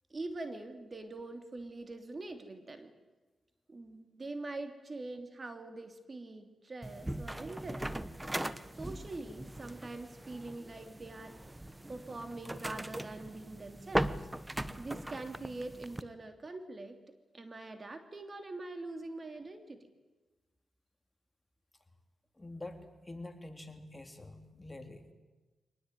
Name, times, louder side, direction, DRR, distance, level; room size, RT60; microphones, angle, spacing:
voice 1, 0.1-2.9 3.7-7.9 8.7-11.4 11.9-14.3 14.8-17.0 17.3-19.9, right 2 dB, 35° right, 7 dB, 3.0 m, -44 dB
sound 1, 6.8-16.0, right 1 dB, 10° right, 1.2 m, -39 dB
voice 2, 22.3-25.1, left 2 dB, 15° left, 6 dB, 3.2 m, -46 dB
24.5 x 19.5 x 9.3 m, 1.2 s
cardioid pair, 65°, 0 cm